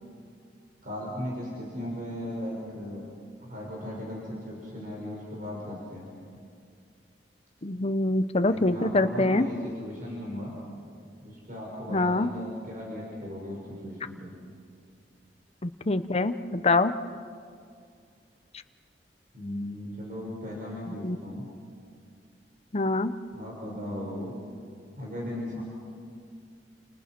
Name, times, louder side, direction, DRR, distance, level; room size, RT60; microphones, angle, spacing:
voice 1, 0.8-3.1 3.4-6.1 8.5-10.5 11.2-14.3 19.3-21.5 23.3-24.4 24.9-25.6, left 1 dB, 50° right, -3 dB, 5.7 m, -37 dB
voice 2, 7.6-9.5 11.9-12.3 15.6-16.9 21.0-21.2 22.7-23.1, left 2 dB, 35° left, 10 dB, 0.9 m, -25 dB
29.5 x 29.5 x 6.1 m, 2.3 s
head